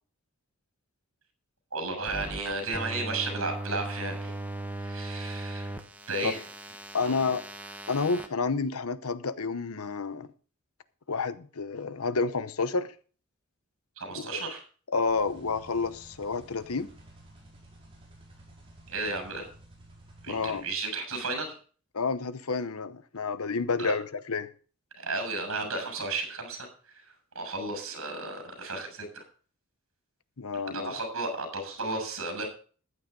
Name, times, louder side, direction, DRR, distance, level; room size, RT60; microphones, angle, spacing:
voice 1, 1.7-4.3 4.8-5.7 6.1-6.4 14.0-14.6 18.9-19.5 20.2-21.5 23.8-23.9 24.9-26.7 27.4-29.2 30.7-32.5, right 3 dB, 70° right, 6 dB, 6.9 m, -33 dB
sound 1, 2.0-8.3, right 1 dB, 5° right, 0.9 m, -38 dB
voice 2, 6.9-7.4 7.9-10.3 11.1-12.9 14.2-14.5 14.9-16.9 20.3-20.6 21.9-24.5 30.4-31.0, left 4 dB, 85° left, 13 dB, 0.9 m, -30 dB
sound 2, 15.1-20.6, right 1 dB, 25° right, 5.4 m, -52 dB
14.5 x 10.0 x 3.8 m, 0.40 s
head